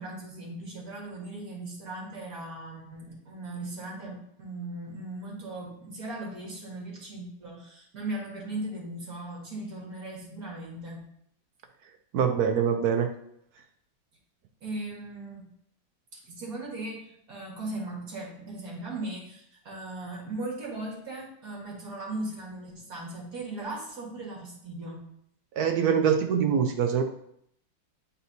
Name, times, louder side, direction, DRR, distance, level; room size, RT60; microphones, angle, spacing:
voice 1, 0.0-11.1 14.6-15.5 16.1-25.1, right 2 dB, 50° right, -2 dB, 2.0 m, -38 dB
voice 2, 12.1-13.1 25.6-27.0, right 7 dB, 70° right, 6 dB, 0.9 m, -24 dB
9.0 x 4.2 x 2.7 m, 0.71 s
omnidirectional pair, 2.1 m